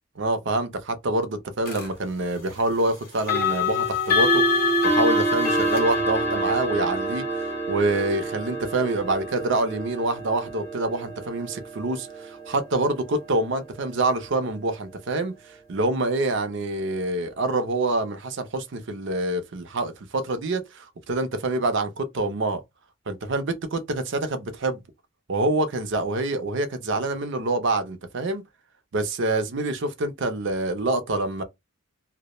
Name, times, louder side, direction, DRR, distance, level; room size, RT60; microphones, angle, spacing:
voice 1, 0.2-7.2 7.7-15.4 15.7-22.6 23.1-24.8 25.3-28.4 28.9-31.4, right 2 dB, 55° right, 0.5 m, -26 dB
sound 1, 1.6-1.9 3.2-14.0, left 1 dB, 45° left, 0.7 m, -26 dB
2.2 x 2.0 x 2.8 m
head